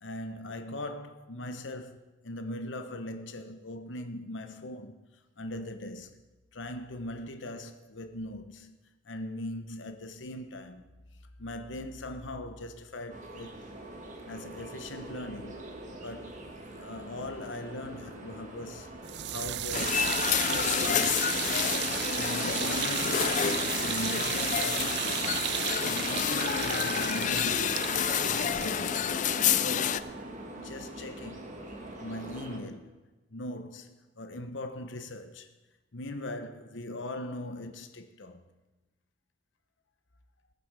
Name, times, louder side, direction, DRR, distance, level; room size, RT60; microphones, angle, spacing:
voice 1, 0.0-5.0 5.4-6.2 6.5-8.8 9.0-10.9 11.4-13.6 14.2-15.7 16.0-16.4 16.7-21.4 22.1-25.3 25.8-29.1 29.6-30.2 30.5-31.5 32.0-33.0 33.3-35.5 35.9-38.4, left 1 dB, 75° left, 1.0 m, -40 dB
sound 1, 13.1-32.6, right 1 dB, 40° right, 1.9 m, -44 dB
sound 2, 19.0-30.1, right 12 dB, 65° right, 0.4 m, -34 dB
sound 3, 19.7-30.0, left 8 dB, 40° left, 0.4 m, -29 dB
19.5 x 7.0 x 4.9 m
head